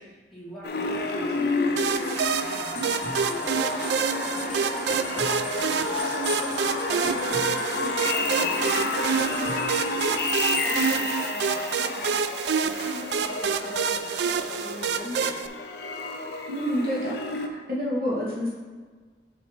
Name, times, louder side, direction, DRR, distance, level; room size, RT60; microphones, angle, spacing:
voice 1, 0.0-6.4 6.9-12.2 12.6-15.6, left 1 dB, ahead, -9 dB, 2.1 m, -42 dB
sound 1, 0.6-17.5, left 3 dB, 65° left, 0.7 m, -31 dB
sound 2, 1.8-15.5, right 6 dB, 70° right, 0.3 m, -28 dB
sound 3, 2.8-12.5, equal, 50° left, 1.6 m, -34 dB
voice 2, 16.5-17.1 17.7-18.5, equal, 55° right, -6 dB, 1.6 m, -27 dB
6.4 x 5.4 x 4.2 m, 1.5 s
head